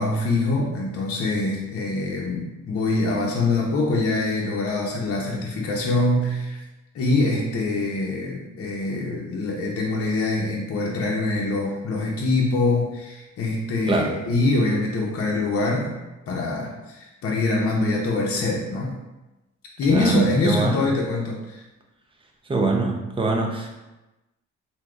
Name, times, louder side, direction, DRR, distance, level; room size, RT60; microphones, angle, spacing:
voice 1, 0.0-6.6 6.9-16.0 16.3-19.0 19.8-21.6, left 2 dB, 50° left, -3 dB, 0.7 m, -24 dB
voice 2, 13.9-14.2 19.9-20.8 22.5-23.8, right 3 dB, 20° right, 1 dB, 0.5 m, -23 dB
3.5 x 2.7 x 2.3 m, 1.0 s
cardioid pair, 90°, 30 cm